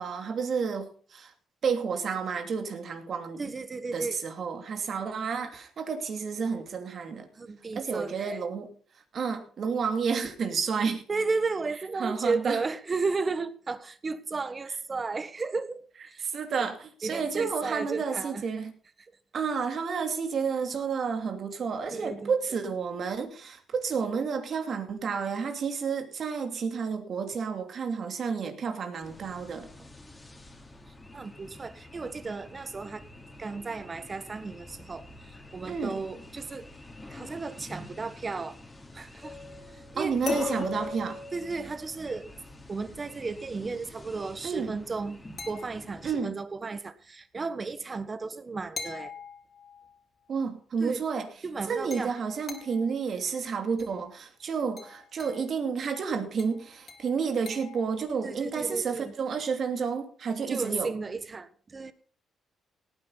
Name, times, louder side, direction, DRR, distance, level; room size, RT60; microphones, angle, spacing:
voice 1, 0.0-1.3 1.6-3.4 3.9-7.3 7.7-8.7 9.1-11.0 12.0-12.6 16.2-18.7 19.3-29.7 35.6-36.0 40.0-41.2 44.4-44.7 46.0-46.4 50.3-60.9, right 5 dB, 55° right, 6 dB, 2.7 m, -31 dB
voice 2, 3.4-4.2 7.3-8.4 11.1-16.3 16.6-16.7 17.0-18.4 21.9-22.3 31.1-33.0 33.4-36.7 37.1-38.6 38.9-39.4 39.9-40.1 41.3-42.3 42.7-49.1 50.8-51.0 51.4-52.1 58.2-59.1 60.5-61.9, right 4 dB, 30° right, 14 dB, 1.3 m, -34 dB
sound 1, 29.0-46.2, left 2 dB, 15° left, 3.0 m, -45 dB
sound 2, 39.2-42.3 45.4-46.2 48.8-50.0 51.9-53.0 53.8-54.0 54.8-55.5 56.4-57.9, left 3 dB, 40° left, 3.4 m, -40 dB
18.0 x 9.7 x 4.0 m, 0.43 s
cardioid pair, 90°, 0 cm